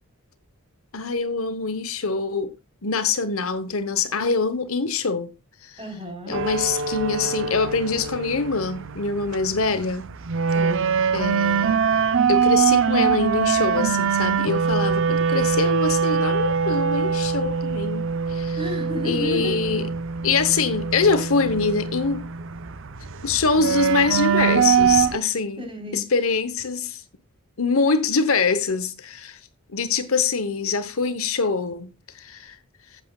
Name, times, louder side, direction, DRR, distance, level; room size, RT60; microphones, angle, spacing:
voice 1, 0.9-2.5 2.8-5.3 5.6-5.8 6.3-10.1 11.1-11.8 12.3-18.6 19.0-19.9 20.2-22.3 23.2-25.7 25.9-27.0 27.6-29.4 29.7-32.6, left 4 dB, 65° left, 1.1 m, -24 dB
voice 2, 5.8-6.4 10.5-10.9 18.5-19.6 25.6-26.0, left 2 dB, 25° right, 4.1 m, -31 dB
sound 1, 6.3-25.2, right 6 dB, 60° right, 0.7 m, -23 dB
15.0 x 8.1 x 2.3 m
head